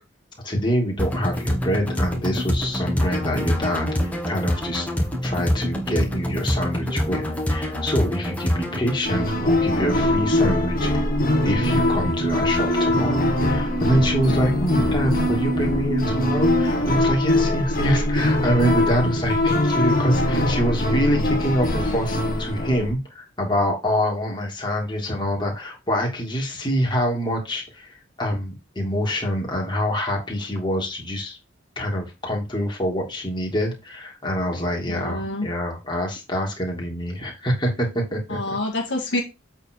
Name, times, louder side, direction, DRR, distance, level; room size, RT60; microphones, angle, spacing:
voice 1, 0.4-3.9 4.3-4.9 5.2-11.0 11.4-31.4 31.8-38.4, equal, 25° left, -1 dB, 2.8 m, -25 dB
sound 1, 1.0-9.0, equal, 5° left, 2.0 m, -25 dB
sound 2, 7.5-16.7, right 2 dB, 50° right, 0.6 m, -30 dB
sound 3, 9.0-22.9, left 1 dB, 45° left, 1.8 m, -22 dB
voice 2, 34.9-35.5 38.3-39.2, left 1 dB, 60° left, 1 dB, 1.8 m, -27 dB
8.1 x 4.5 x 4.7 m, 0.25 s
head